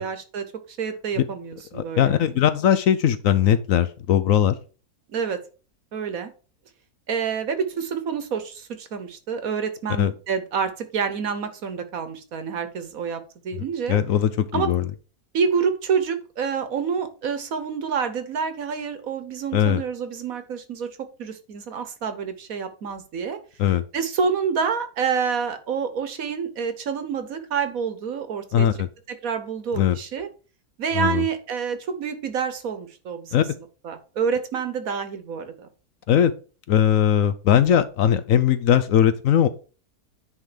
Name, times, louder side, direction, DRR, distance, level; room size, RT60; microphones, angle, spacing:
voice 1, 0.0-2.3 5.1-5.4 5.9-6.3 7.1-14.0 14.5-14.7 15.3-23.4 23.9-28.7 29.1-30.3 30.8-33.4 33.8-35.7, right 6 dB, 65° right, 10 dB, 1.5 m, -28 dB
voice 2, 1.7-4.6 10.0-10.1 13.6-14.9 19.5-19.8 23.6-23.8 28.5-28.9 29.8-30.0 30.9-31.2 33.3-33.4 36.1-36.3 36.7-39.5, left 9 dB, 65° left, 12 dB, 0.9 m, -20 dB
9.9 x 3.8 x 5.1 m, 0.36 s
omnidirectional pair, 1.7 m